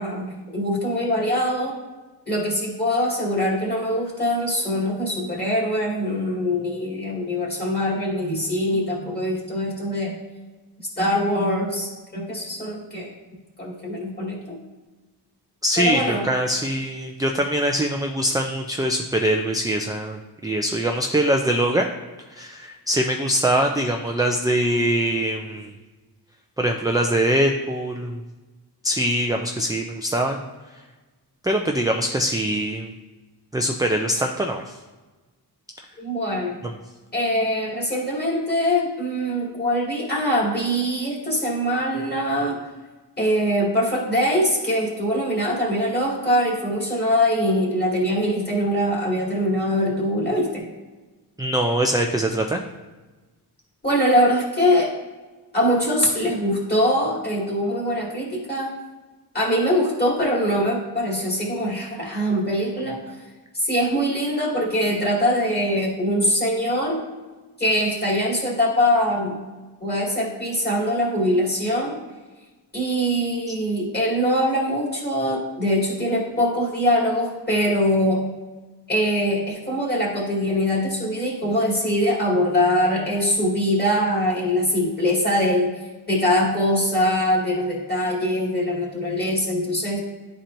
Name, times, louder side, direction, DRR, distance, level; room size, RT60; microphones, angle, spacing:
voice 1, 0.0-1.7 2.3-10.2 11.0-13.1 13.6-14.6 15.8-16.3 36.0-36.6 37.1-42.6 43.2-50.7 53.8-54.9 55.5-58.7 59.3-63.1 63.5-67.0 67.6-69.4 69.8-71.9 72.7-78.2 78.9-90.0, equal, 25° left, -5 dB, 2.2 m, -23 dB
voice 2, 15.6-21.9 22.3-25.7 26.6-28.2 28.8-30.4 31.4-32.9 33.5-34.8 36.6-36.7 51.4-52.6, right 1 dB, 10° right, 2 dB, 0.3 m, -23 dB
11.5 x 4.3 x 2.6 m, 1.2 s
wide cardioid pair, 140°, 40 cm